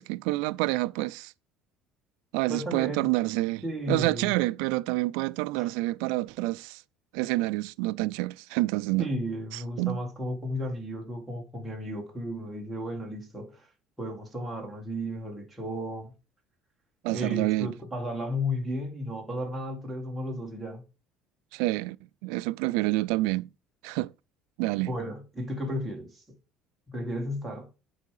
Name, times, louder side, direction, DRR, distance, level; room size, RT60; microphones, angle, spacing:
voice 1, 0.0-1.3 2.3-6.8 7.1-9.1 9.8-10.0 17.0-17.7 21.5-22.0 22.2-23.5 23.8-24.1 24.6-24.9, right 20 dB, 85° right, 0.3 m, -28 dB
voice 2, 2.5-3.1 3.6-4.3 5.6-5.7 9.0-13.7 14.0-16.1 17.1-20.8 24.9-26.2 26.9-27.7, left 1 dB, 5° right, 1.7 m, -34 dB
8.2 x 4.7 x 4.8 m
cardioid pair, 175°, 0 cm